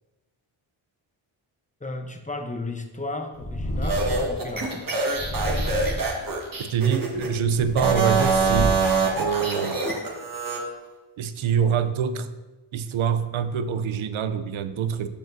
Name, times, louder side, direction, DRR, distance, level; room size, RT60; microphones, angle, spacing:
voice 1, 1.8-4.8, left 2 dB, 15° left, 5 dB, 0.8 m, -34 dB
Purr, 3.3-4.4 5.1-6.2 6.9-9.0, equal, 90° left, 2.6 m, -30 dB
sound 1, 3.8-7.3 7.7-10.6, right 4 dB, 40° right, 1.6 m, -25 dB
voice 2, 6.6-8.8 9.2-9.9 11.2-12.3 12.7-15.1, right 7 dB, 70° right, 11 dB, 0.7 m, -25 dB
13.5 x 5.0 x 2.7 m, 1.1 s
cardioid pair, 85°, 50 cm